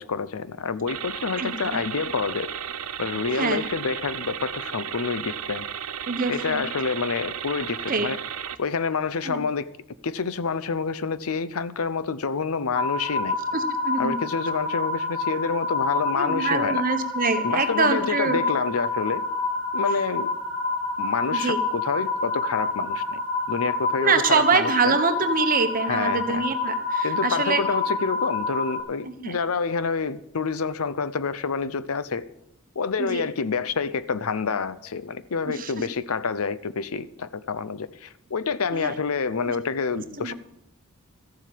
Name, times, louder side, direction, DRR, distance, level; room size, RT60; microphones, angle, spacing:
voice 1, 0.0-2.5 3.0-5.7 6.3-8.2 8.6-9.7 10.0-13.4 14.0-16.8 17.4-19.2 19.7-20.3 21.0-23.2 23.5-25.0 25.8-26.4 27.0-32.2 32.7-40.3, left 5 dB, 70° left, 15 dB, 0.7 m, -28 dB
sound 1, 0.9-8.6, right 9 dB, 75° right, 0.7 m, -34 dB
voice 2, 1.4-1.8 3.3-3.7 6.1-6.7 7.9-8.1 9.2-9.4 13.5-14.2 16.1-18.4 21.3-21.6 24.0-27.6 29.0-29.3 33.0-33.2 35.4-35.7 38.7-38.9 39.5-39.6 40.2-40.3, right 4 dB, 40° right, 8 dB, 1.2 m, -25 dB
sound 2, 12.7-28.8, left 3 dB, 50° left, 3.5 m, -28 dB
14.0 x 7.4 x 8.4 m, 0.82 s
head